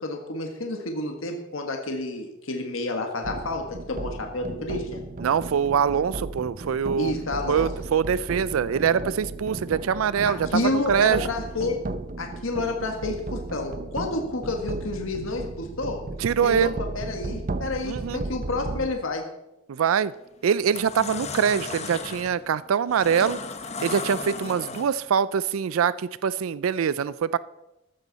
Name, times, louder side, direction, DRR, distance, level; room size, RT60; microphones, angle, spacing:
voice 1, 0.0-5.0 7.0-7.7 10.3-11.8 12.2-16.1 16.4-19.3, left 2 dB, 75° left, 3 dB, 1.6 m, -30 dB
sound 1, 3.2-18.9, right 2 dB, 40° right, 0.6 m, -35 dB
voice 2, 5.2-7.1 7.5-11.3 16.2-16.7 17.8-18.2 19.7-20.1 20.4-23.4 23.8-27.4, right 7 dB, 80° right, 18 dB, 0.4 m, -24 dB
sound 2, 19.8-20.0 20.5-25.2, left 4 dB, 35° left, 1.1 m, -35 dB
14.5 x 12.5 x 4.1 m, 0.95 s
head